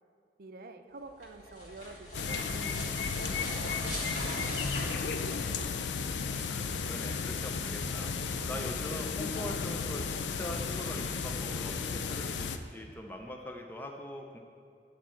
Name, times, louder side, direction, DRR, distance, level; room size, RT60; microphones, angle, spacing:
voice 1, 0.4-5.8, right 3 dB, 55° right, 7 dB, 0.5 m, -49 dB
sound 1, 1.1-6.0, left 1 dB, 50° left, 1.7 m, -41 dB
sound 2, 2.1-12.6, left 5 dB, 90° left, 0.5 m, -34 dB
voice 2, 6.5-14.4, left 1 dB, 10° left, 2 dB, 0.5 m, -42 dB
9.5 x 4.4 x 7.4 m, 2.4 s
head